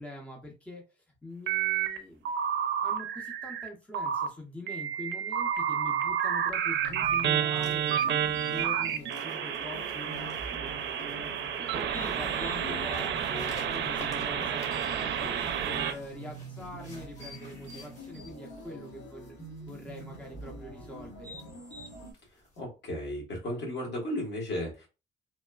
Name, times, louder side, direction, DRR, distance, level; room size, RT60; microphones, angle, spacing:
voice 1, 0.0-2.3 2.8-19.4 19.7-21.3, left 1 dB, 5° left, 1 dB, 0.6 m, -44 dB
sound 1, 1.5-2.0 2.2-3.7 3.9-4.3 4.7-15.9, right 9 dB, 65° right, 0.5 m, -30 dB
sound 2, 6.8-22.1, equal, 75° left, 1.2 m, -45 dB
sound 3, 7.0-22.6, left 2 dB, 35° left, 1.2 m, -54 dB
voice 2, 22.6-24.9, left 1 dB, 60° left, -1 dB, 1.4 m, -34 dB
3.1 x 2.1 x 2.3 m, 0.29 s
cardioid pair, 90°, 20 cm